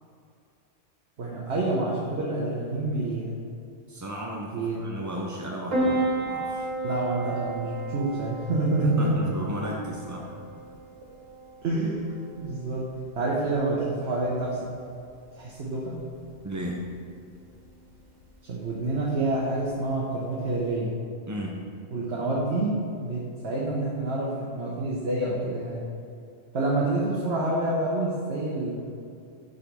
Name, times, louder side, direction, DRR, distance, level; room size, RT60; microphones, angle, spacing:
voice 1, 1.2-3.4 4.5-4.8 6.8-9.2 11.6-12.0 12.4-12.9 13.1-14.6 15.3-16.0 18.4-20.9 21.9-25.8 26.5-28.7, right 2 dB, 60° right, -5 dB, 1.2 m, -27 dB
voice 2, 3.9-6.7 9.0-10.4 16.4-16.9 21.3-21.6, right 1 dB, 30° right, -2 dB, 0.3 m, -34 dB
Piano, 5.7-20.7, right 2 dB, 85° right, 1.7 m, -35 dB
6.4 x 4.0 x 6.0 m, 2.4 s
omnidirectional pair, 1.3 m